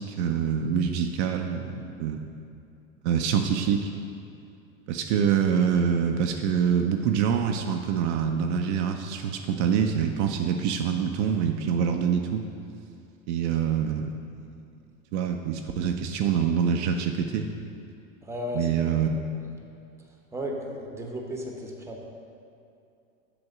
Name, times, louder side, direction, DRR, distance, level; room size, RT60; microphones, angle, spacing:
voice 1, 0.0-2.3 3.0-3.9 4.9-12.4 13.3-14.1 14.4-14.6 15.1-17.5 18.6-19.1, right 7 dB, 55° right, 4 dB, 0.6 m, -25 dB
voice 2, 18.2-19.0 19.4-19.5 20.0-22.0, equal, 5° right, 0 dB, 0.9 m, -35 dB
7.9 x 3.5 x 6.1 m, 2.6 s
hypercardioid pair, 90°, 41 cm